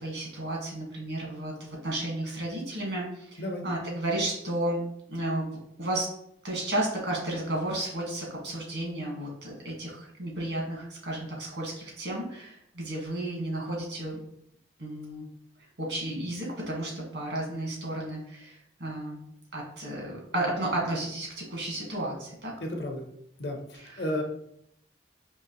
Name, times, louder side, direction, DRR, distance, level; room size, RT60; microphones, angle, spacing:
voice 1, 0.0-4.8 5.1-5.5 5.8-6.1 6.4-14.2 14.8-15.3 15.8-19.2 19.5-22.5, right 1 dB, 75° right, -2 dB, 1.6 m, -33 dB
voice 2, 22.6-23.0 23.4-24.2, left 1 dB, 65° left, 2 dB, 0.8 m, -33 dB
4.6 x 2.9 x 2.9 m, 0.73 s
head